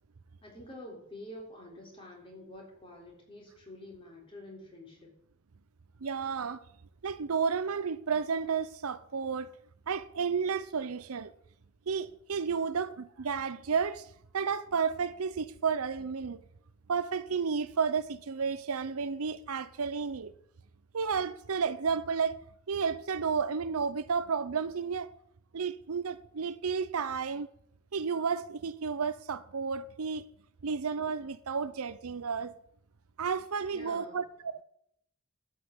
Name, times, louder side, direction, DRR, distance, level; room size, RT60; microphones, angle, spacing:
voice 1, 0.4-5.1 33.7-34.2, left 1 dB, 25° left, 3.7 m, -47 dB
voice 2, 6.0-6.6 7.0-9.5 9.9-11.3 11.9-14.1 14.3-16.4 16.9-20.3 20.9-22.4 22.7-25.1 25.5-27.5 27.9-30.2 30.6-32.5 33.2-34.6, right 5 dB, 85° right, 0.6 m, -32 dB
12.0 x 5.8 x 8.0 m
head